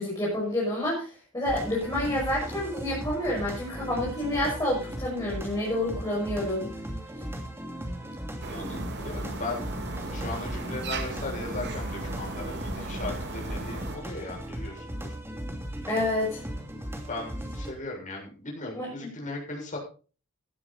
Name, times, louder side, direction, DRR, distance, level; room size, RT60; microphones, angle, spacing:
voice 1, 0.0-6.7 15.9-16.4 18.7-18.9, left 1 dB, 15° left, -5 dB, 6.7 m, -28 dB
sound 1, 1.4-17.7, equal, 10° right, 2.6 m, -37 dB
voice 2, 8.0-9.7 10.1-15.1 17.1-19.8, left 2 dB, 35° left, -1 dB, 6.9 m, -37 dB
sound 2, 8.4-14.0, right 2 dB, 50° right, 2.3 m, -36 dB
15.5 x 12.0 x 4.2 m, 0.37 s
head